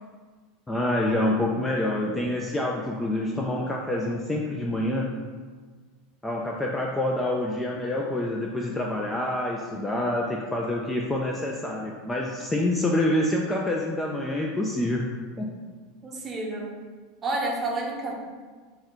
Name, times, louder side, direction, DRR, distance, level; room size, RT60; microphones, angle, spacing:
voice 1, 0.7-5.1 6.2-15.1 15.4-15.5, left 1 dB, 10° left, -1 dB, 0.3 m, -27 dB
voice 2, 16.0-16.7 17.2-18.1, right 2 dB, 20° right, -1 dB, 0.7 m, -29 dB
3.7 x 2.2 x 4.4 m, 1.5 s
supercardioid pair, 140°, 0 cm